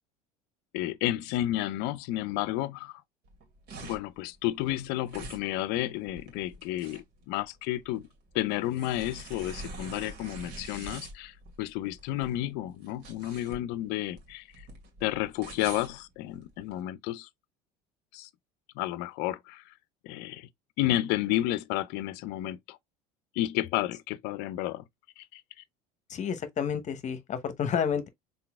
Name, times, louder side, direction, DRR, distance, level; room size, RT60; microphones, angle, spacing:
voice 1, 0.7-3.0 3.8-8.0 8.3-14.4 15.0-17.3 18.1-18.3 18.8-19.6 20.0-20.5 20.8-22.8 23.4-24.8 25.2-25.4, left 15 dB, 60° left, 0.6 m, -31 dB
sound 1, 3.2-16.8, right 3 dB, 55° right, 2.4 m, -45 dB
voice 2, 26.1-28.1, left 7 dB, 40° left, 0.9 m, -30 dB
5.8 x 3.9 x 2.3 m
hypercardioid pair, 70°, 19 cm